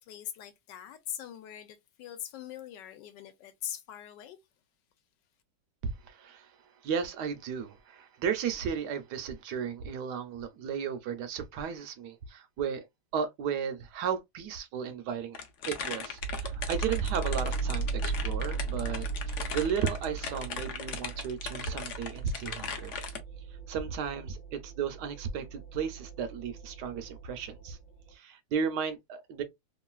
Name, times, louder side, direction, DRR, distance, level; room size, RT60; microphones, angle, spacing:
voice 1, 0.0-4.4, left 10 dB, 75° left, 1.2 m, -42 dB
voice 2, 5.8-6.5 6.8-12.8 13.1-15.4 15.7-23.0 23.7-27.8 28.1-29.4, right 7 dB, 70° right, 1.1 m, -34 dB
sound 1, 15.3-23.2, left 6 dB, 90° left, 0.6 m, -38 dB
sound 2, 16.2-28.1, right 5 dB, 50° left, 1.2 m, -37 dB
3.0 x 2.5 x 2.3 m
omnidirectional pair, 2.1 m